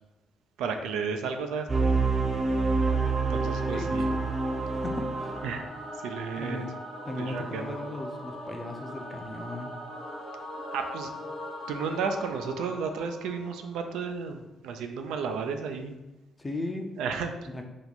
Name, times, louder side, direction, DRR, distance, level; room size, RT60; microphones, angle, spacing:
voice 1, 0.6-2.0 3.3-4.1 5.4-5.6 6.0-6.6 7.2-7.8 10.7-11.1 11.7-16.0 17.0-17.3, right 5 dB, 90° right, 6 dB, 0.3 m, -33 dB
sound 1, 1.7-5.6, right 3 dB, 35° right, 0.5 m, -27 dB
Singing / Musical instrument, 2.7-13.9, equal, 80° left, 1.1 m, -41 dB
voice 2, 3.7-4.2 4.7-5.4 6.4-6.7 7.0-9.7 16.4-16.9 17.5-17.7, left 2 dB, 20° left, 4 dB, 0.5 m, -37 dB
2.9 x 2.2 x 4.0 m, 1.0 s
cardioid pair, 90°, 0 cm